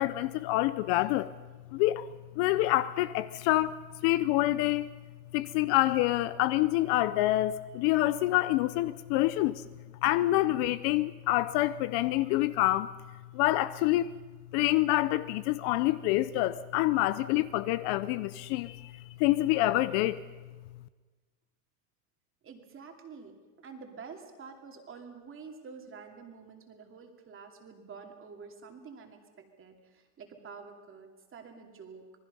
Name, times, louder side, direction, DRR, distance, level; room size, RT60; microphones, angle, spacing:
voice 1, 0.0-1.3 1.7-2.1 2.4-3.8 4.0-4.9 5.3-9.7 10.0-12.9 13.3-14.1 14.5-20.2, left 16 dB, 50° left, 0.7 m, -27 dB
voice 2, 22.4-32.1, right 5 dB, 25° right, 2.6 m, -48 dB
27.0 x 19.5 x 5.5 m
supercardioid pair, 145°, 49 cm